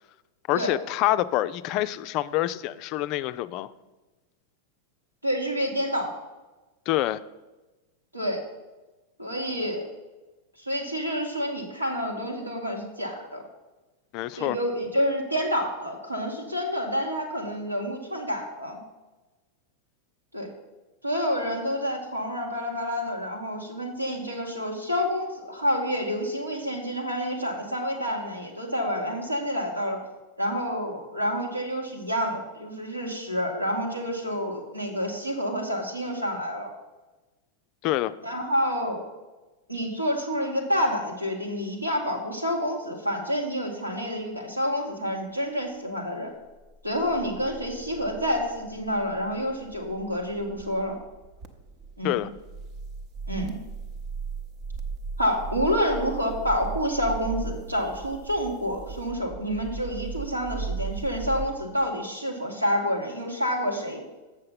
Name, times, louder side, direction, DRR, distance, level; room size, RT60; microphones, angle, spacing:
voice 1, 0.5-3.7 6.9-7.2 14.1-14.6 37.8-38.1 52.0-52.3, left 15 dB, 40° left, 14 dB, 0.3 m, -26 dB
voice 2, 5.2-6.1 8.1-8.4 9.2-9.8 10.6-13.4 14.4-18.8 20.3-20.5 21.0-30.0 30.4-36.7 38.2-39.0 39.7-46.3 46.8-50.9 52.0-52.2 53.3-53.5 55.2-64.0, equal, 85° right, 0 dB, 1.6 m, -28 dB
sound 1, 46.6-61.5, right 4 dB, 40° right, 0.8 m, -37 dB
7.6 x 6.4 x 5.7 m, 1.2 s
figure-of-eight pair, 90°, 0 cm